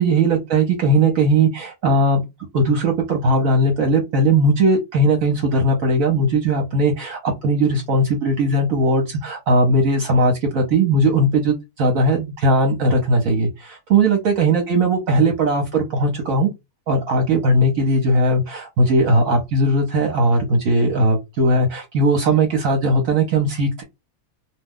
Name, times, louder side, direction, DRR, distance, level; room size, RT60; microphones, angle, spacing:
voice 1, 0.0-2.2 2.5-16.5 16.9-23.8, right 1 dB, 65° right, 1.1 m, -18 dB
2.6 x 2.2 x 3.5 m
omnidirectional pair, 1.6 m